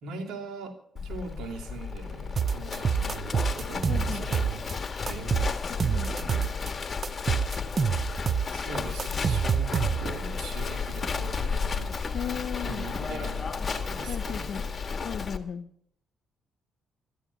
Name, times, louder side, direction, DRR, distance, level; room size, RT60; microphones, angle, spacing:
voice 1, 0.0-4.6 5.0-5.6 8.4-14.7, right 4 dB, 85° right, 1 dB, 2.6 m, -41 dB
Livestock farm animals working animals, 1.0-15.4, left 5 dB, 35° left, 1.6 m, -33 dB
sound 1, 2.4-4.7 5.1-6.7 7.0-10.2, right 6 dB, 40° right, 0.6 m, -27 dB
voice 2, 3.9-4.2 5.7-6.2 12.1-12.9 14.1-14.7 15.0-15.7, left 8 dB, 65° left, 9 dB, 0.8 m, -36 dB
13.5 x 11.5 x 8.1 m, 0.68 s
cardioid pair, 90°, 0 cm